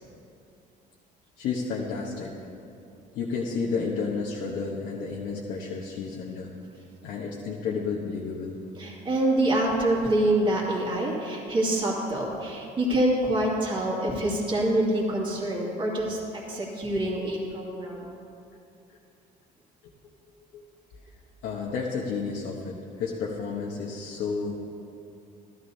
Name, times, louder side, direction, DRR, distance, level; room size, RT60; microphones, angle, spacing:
voice 1, 1.4-2.5 3.1-6.5 7.0-8.6 20.5-20.6 21.4-24.5, left 5 dB, 85° left, -3 dB, 1.1 m, -31 dB
voice 2, 8.8-18.1, right 1 dB, 30° right, -5 dB, 2.3 m, -26 dB
14.5 x 12.5 x 2.8 m, 2.6 s
cardioid pair, 110°, 17 cm